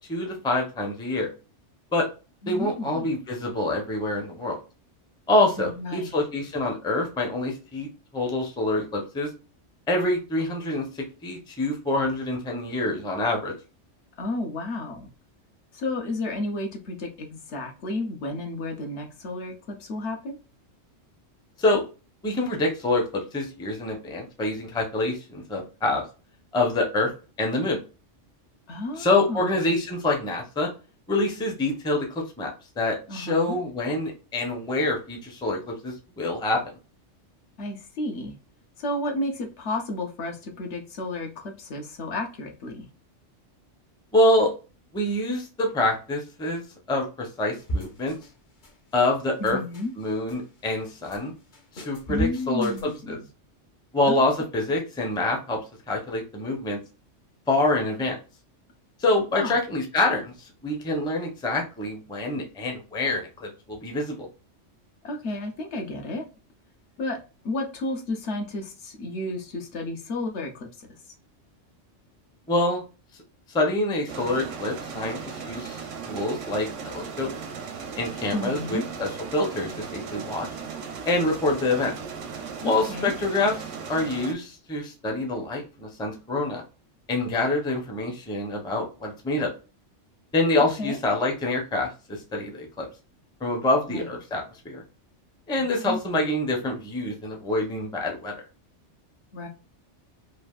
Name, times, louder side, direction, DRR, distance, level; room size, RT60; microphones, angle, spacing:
voice 1, 0.1-1.3 1.9-2.1 2.5-4.6 5.3-9.3 9.9-10.9 11.2-13.5 21.6-21.8 22.2-26.0 26.5-27.1 27.4-27.8 29.0-30.7 31.1-32.5 32.8-36.6 44.1-44.5 44.9-46.6 46.9-48.2 48.9-49.6 50.0-51.3 51.7-53.2 53.9-55.6 55.9-56.8 57.5-58.1 59.0-64.3 72.5-72.8 73.5-77.3 78.0-80.5 81.0-81.9 82.6-86.6 87.1-89.5 90.3-92.9 93.4-94.8 95.5-98.4, left 2 dB, 5° left, 1 dB, 0.4 m, -26 dB
voice 2, 2.4-3.1 5.6-6.1 14.2-15.1 15.7-20.4 28.7-29.6 33.1-33.6 37.6-38.3 38.8-42.9 49.4-49.9 52.1-53.3 54.1-54.2 59.3-59.6 65.0-66.3 67.0-67.2 67.4-70.9 78.3-78.9 82.6-83.1 90.8-91.0 93.9-94.0 95.9-96.0 99.3-99.5, left 2 dB, 70° left, 3 dB, 1.0 m, -32 dB
sound 1, 47.7-48.4 48.6-49.1 49.5-50.4 50.7-51.2 51.5-53.0, right 1 dB, 45° left, 0.8 m, -35 dB
sound 2, 74.1-84.3, right 6 dB, 80° right, 1.0 m, -37 dB
3.2 x 2.5 x 2.3 m, 0.33 s
omnidirectional pair, 1.2 m